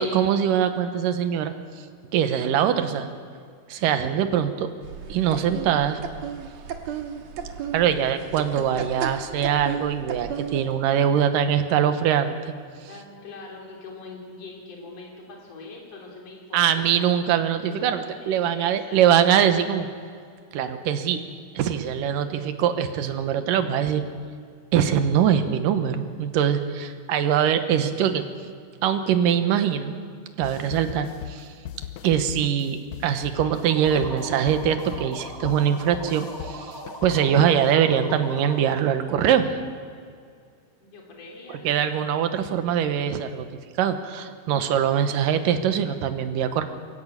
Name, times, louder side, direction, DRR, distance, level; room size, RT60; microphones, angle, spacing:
voice 1, 0.0-1.5 2.1-3.1 3.7-4.7 5.1-6.0 7.7-12.3 16.5-19.9 20.5-21.2 21.6-24.0 24.7-28.2 28.8-29.9 30.4-31.5 32.0-39.5 41.6-43.5 43.8-46.7, right 9 dB, 85° right, 8 dB, 2.7 m, -22 dB
sound 1, 4.8-10.8, right 7 dB, 60° right, 2.3 m, -34 dB
voice 2, 12.9-17.0 17.6-19.2 40.8-41.7, left 3 dB, 50° left, -1 dB, 4.5 m, -43 dB
sound 2, 30.4-37.8, left 11 dB, 80° left, 1.6 m, -39 dB
sound 3, 33.3-39.0, equal, 10° left, 2.1 m, -39 dB
24.0 x 14.0 x 8.7 m, 2.2 s
omnidirectional pair, 3.9 m